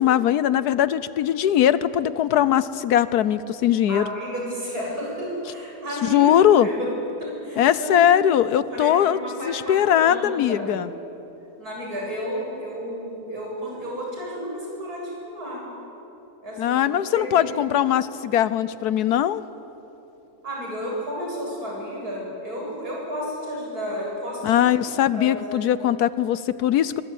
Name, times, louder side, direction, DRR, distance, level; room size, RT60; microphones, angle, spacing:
voice 1, 0.0-4.0 6.0-6.7 7.6-10.9 16.6-19.4 24.4-27.0, left 10 dB, 85° left, 16 dB, 1.3 m, -20 dB
voice 2, 3.9-6.9 7.2-8.0 8.5-10.9 11.6-15.7 16.4-17.5 20.4-24.6 25.1-25.6, equal, 75° right, -3 dB, 8.6 m, -32 dB
23.5 x 22.5 x 9.3 m, 3.0 s
omnidirectional pair, 1.6 m